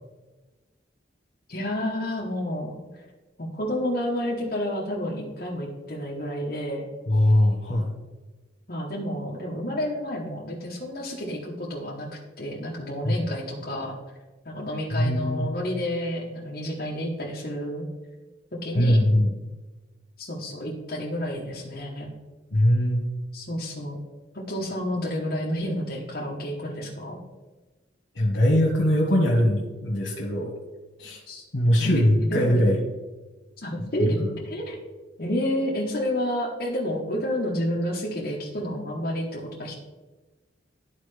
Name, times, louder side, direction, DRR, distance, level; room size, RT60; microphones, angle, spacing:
voice 1, 1.5-3.0 3.4-6.8 8.7-14.0 14.4-17.9 18.6-19.0 20.2-22.1 23.3-24.0 24.3-27.2 31.3-31.4 31.8-32.4 33.6-34.8 35.2-39.8, equal, 50° left, -4 dB, 1.0 m, -30 dB
voice 2, 7.1-7.9 13.0-13.2 14.9-15.4 18.7-19.3 22.5-23.0 28.1-30.5 31.0-31.2 31.5-32.8, equal, 80° left, -3 dB, 1.3 m, -21 dB
12.0 x 4.3 x 3.3 m, 1.2 s
head